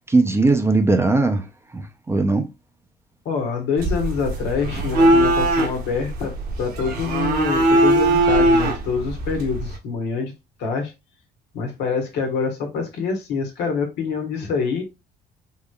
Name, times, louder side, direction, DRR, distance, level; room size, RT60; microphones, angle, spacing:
voice 1, 0.1-1.5 1.7-2.5, right 3 dB, 15° right, 0.5 m, -19 dB
voice 2, 3.2-6.3 6.6-10.3 10.6-10.9 11.5-14.8, left 5 dB, 85° left, 1.3 m, -25 dB
sound 1, 3.8-9.8, right 1 dB, 65° right, 1.0 m, -20 dB
3.7 x 3.1 x 2.3 m
cardioid pair, 110°, 17 cm